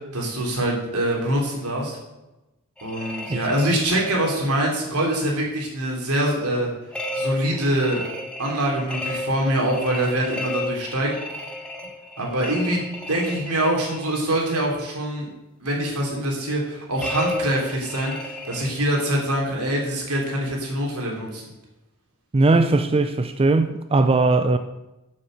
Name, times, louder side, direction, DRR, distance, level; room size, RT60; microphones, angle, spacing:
voice 1, 0.1-2.0 2.8-6.7 7.1-8.0 8.4-11.1 12.2-15.3 15.6-21.4, right 1 dB, 85° right, 3.1 m, -24 dB
sound 1, 2.8-4.3 6.9-14.3 17.0-19.3, left 2 dB, 5° left, 1.3 m, -33 dB
voice 2, 22.3-24.6, right 3 dB, 25° right, 0.4 m, -19 dB
7.6 x 7.5 x 6.6 m
head